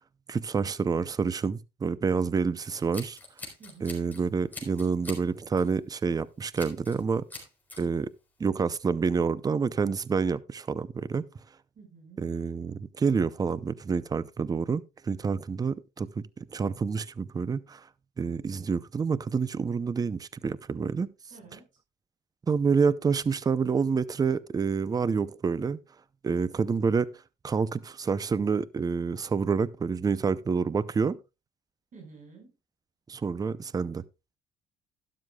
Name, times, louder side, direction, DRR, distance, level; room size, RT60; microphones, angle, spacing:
voice 1, 0.3-3.2 3.8-7.2 7.8-8.1 8.4-11.3 12.2-17.8 18.2-21.1 22.5-25.8 26.2-27.1 27.4-31.2 33.1-34.0, right 5 dB, 20° right, 0.5 m, -28 dB
Scissors, 2.7-4.2 4.5-5.2 5.6-5.8 6.6-7.0 7.3-7.8, left 2 dB, 10° left, 4.1 m, -43 dB
voice 2, 3.6-3.9 11.8-12.3 21.3-21.7 31.9-32.5, right 4 dB, 50° right, 5.3 m, -50 dB
12.5 x 11.5 x 2.3 m
cardioid pair, 110°, 17 cm